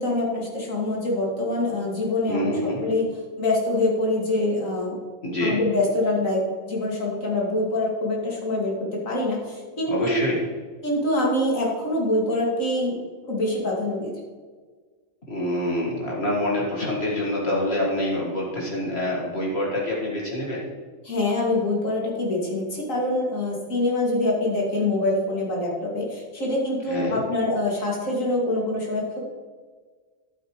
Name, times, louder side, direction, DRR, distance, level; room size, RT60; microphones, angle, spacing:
voice 1, 0.0-2.5 2.8-3.1 3.4-5.0 5.4-6.4 6.7-10.2 10.8-13.0 13.3-14.1 21.0-29.2, left 2 dB, 80° left, -3 dB, 2.7 m, -25 dB
voice 2, 2.3-2.8 5.2-5.6 9.9-10.4 15.3-20.6 26.9-27.2, left 1 dB, 50° left, -4 dB, 2.1 m, -26 dB
11.5 x 9.1 x 3.1 m, 1.5 s
omnidirectional pair, 1.4 m